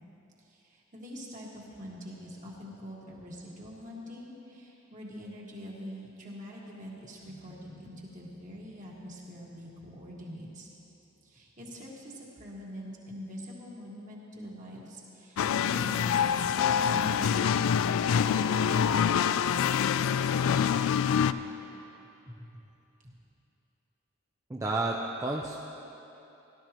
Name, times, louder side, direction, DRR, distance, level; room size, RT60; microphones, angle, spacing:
voice 1, 0.4-10.7 11.2-19.4 22.3-22.5 23.0-23.2, equal, 35° right, -4 dB, 1.7 m, -45 dB
sound 1, 7.2-11.4, left 1 dB, 90° right, 2.4 m, -59 dB
sound 2, 15.4-21.3, left 7 dB, 80° left, 0.3 m, -25 dB
voice 2, 24.5-25.6, right 2 dB, 15° right, -1 dB, 0.4 m, -31 dB
17.5 x 12.0 x 3.0 m, 3.0 s
head